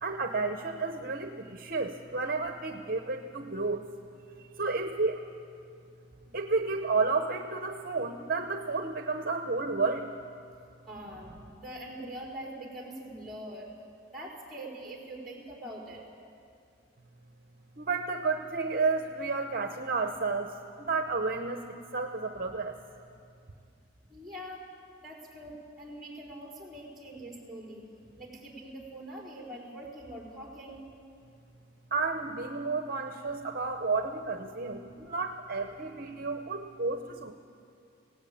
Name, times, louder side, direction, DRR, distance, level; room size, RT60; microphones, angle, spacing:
voice 1, 0.0-3.9 4.4-5.3 6.3-10.1 17.8-22.8 31.9-37.3, right 4 dB, 45° right, 6 dB, 0.9 m, -31 dB
voice 2, 10.9-13.8 14.1-16.0 24.1-24.7 25.0-27.8 28.1-30.8, right 1 dB, ahead, -3 dB, 4.5 m, -43 dB
18.0 x 18.0 x 8.7 m, 2.4 s
head